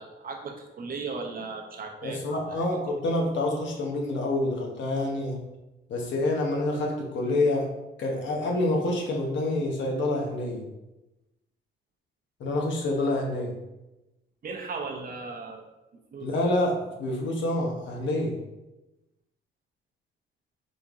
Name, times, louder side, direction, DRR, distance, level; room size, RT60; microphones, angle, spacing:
voice 1, 0.0-2.6 14.4-15.7 16.1-16.3, right 4 dB, 45° right, 2 dB, 0.8 m, -37 dB
voice 2, 2.0-5.4 5.9-7.7 8.0-10.6 12.4-13.5 16.2-18.3, left 2 dB, 70° left, 0 dB, 1.1 m, -27 dB
4.2 x 3.5 x 3.6 m, 0.99 s
cardioid pair, 90°, 20 cm